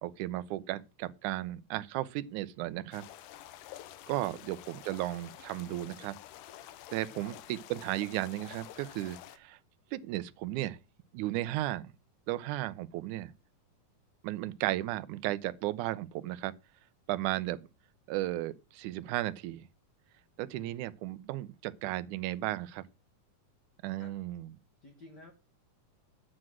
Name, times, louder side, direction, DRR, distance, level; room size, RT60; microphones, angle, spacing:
voice 1, 0.0-3.0 4.1-6.2 6.9-9.6 9.9-10.8 11.1-11.9 12.3-13.3 14.2-16.5 17.1-17.6 18.1-19.7 20.4-22.8 23.8-24.5, right 16 dB, 75° right, 2.0 m, -35 dB
sound 1, 2.9-9.4, left 13 dB, 75° left, 2.2 m, -49 dB
voice 2, 24.8-25.3, left 2 dB, 55° left, 1.2 m, -53 dB
9.8 x 7.6 x 6.2 m
omnidirectional pair, 3.9 m